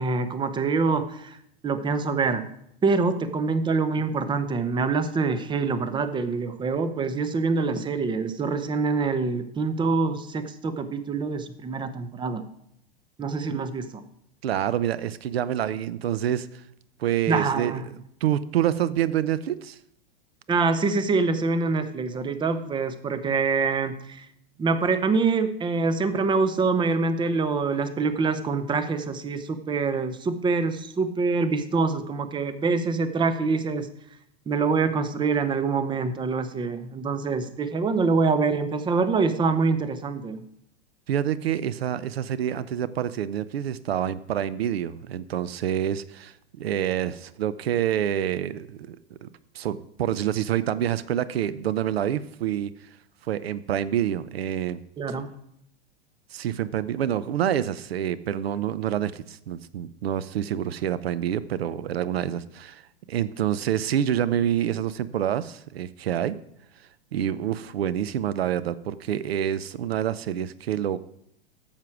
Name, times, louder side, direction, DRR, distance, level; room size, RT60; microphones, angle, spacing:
voice 1, 0.0-1.4 1.6-2.4 2.8-12.4 13.2-14.0 17.3-17.9 20.5-24.3 24.6-33.9 34.5-40.4 55.0-55.3, right 4 dB, 15° right, 11 dB, 0.7 m, -25 dB
voice 2, 14.4-16.6 17.0-17.7 18.2-19.8 41.1-49.3 49.5-52.7 53.3-54.8 56.3-62.8 63.1-66.4 67.1-71.0, right 10 dB, 80° right, 16 dB, 0.6 m, -27 dB
9.4 x 7.5 x 4.7 m, 0.73 s
hypercardioid pair, 110°, 30 cm